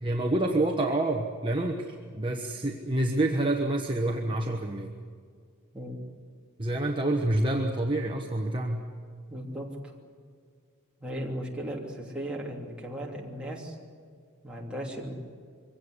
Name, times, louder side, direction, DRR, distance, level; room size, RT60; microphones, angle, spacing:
voice 1, 0.0-4.9 6.6-8.9, right 1 dB, 20° right, 1 dB, 1.2 m, -28 dB
voice 2, 9.3-9.9 11.0-13.8 14.4-15.1, equal, 5° right, -3 dB, 3.1 m, -36 dB
23.5 x 17.0 x 9.8 m, 2.1 s
head